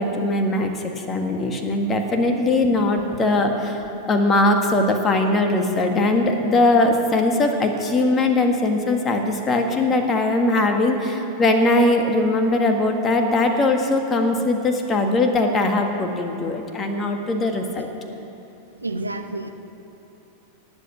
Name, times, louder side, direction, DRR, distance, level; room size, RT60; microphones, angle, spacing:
voice 1, 0.0-17.9, left 2 dB, 25° left, 4 dB, 1.7 m, -20 dB
voice 2, 18.8-19.5, right 2 dB, 80° right, 6 dB, 0.9 m, -29 dB
18.5 x 8.1 x 7.9 m, 3.0 s
figure-of-eight pair, 90°, 0 cm